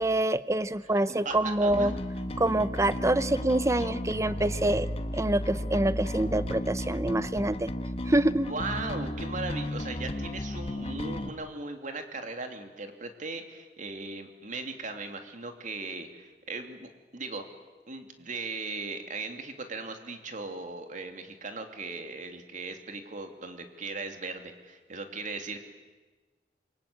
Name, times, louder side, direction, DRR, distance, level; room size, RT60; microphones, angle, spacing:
voice 1, 0.0-1.9 2.4-4.9 5.1-7.7 8.0-8.5, right 1 dB, 15° right, 15 dB, 0.8 m, -26 dB
voice 2, 0.8-1.4 1.6-2.0 8.5-17.4 17.9-25.6, right 3 dB, 45° right, 6 dB, 3.0 m, -38 dB
Bass guitar, 1.7-11.3, left 1 dB, 35° left, 1.5 m, -34 dB
27.5 x 24.5 x 8.7 m, 1.3 s
head